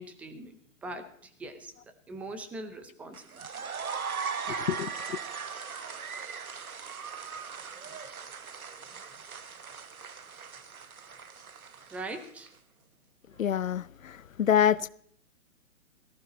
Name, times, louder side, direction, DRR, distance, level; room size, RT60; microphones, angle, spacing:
voice 1, 0.0-1.7 2.1-3.2 11.9-12.5, right 2 dB, 5° right, 0.6 m, -41 dB
sound 1, 3.1-12.5, right 6 dB, 85° right, 1.3 m, -39 dB
voice 2, 4.5-5.2 13.4-14.9, left 9 dB, 70° left, 0.8 m, -27 dB
18.0 x 14.5 x 4.2 m
hypercardioid pair, 140°, 42 cm